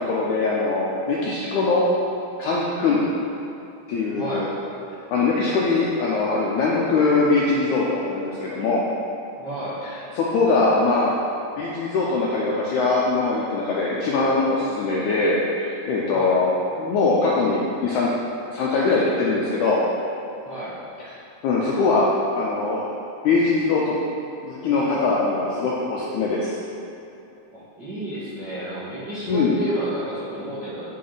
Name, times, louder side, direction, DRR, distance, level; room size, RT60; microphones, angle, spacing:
voice 1, 0.0-1.9 2.4-3.0 3.9-4.5 5.1-8.8 9.8-11.1 11.6-18.1 18.5-19.8 21.0-21.1 21.4-22.1 22.4-22.9 23.2-23.9 24.4-26.5 29.3-29.5, left 3 dB, 80° left, -5 dB, 1.8 m, -22 dB
voice 2, 9.4-9.8 16.0-16.4 20.4-20.7 27.5-30.8, equal, 45° right, -12 dB, 1.4 m, -31 dB
10.5 x 4.1 x 3.9 m, 2.9 s
omnidirectional pair, 4.2 m